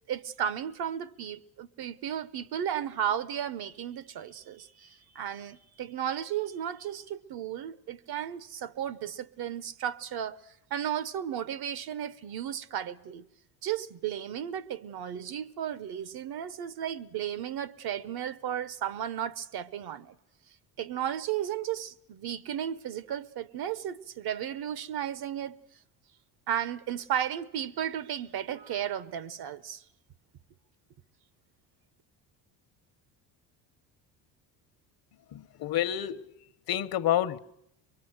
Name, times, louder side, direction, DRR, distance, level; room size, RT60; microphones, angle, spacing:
voice 1, 0.1-10.4 10.7-13.2 13.6-20.1 20.8-25.6 26.5-29.8, right 10 dB, 60° right, 1.0 m, -34 dB
voice 2, 35.3-36.3 36.7-37.4, left 11 dB, 55° left, 1.0 m, -29 dB
23.0 x 23.0 x 8.0 m
supercardioid pair, 95°, 43 cm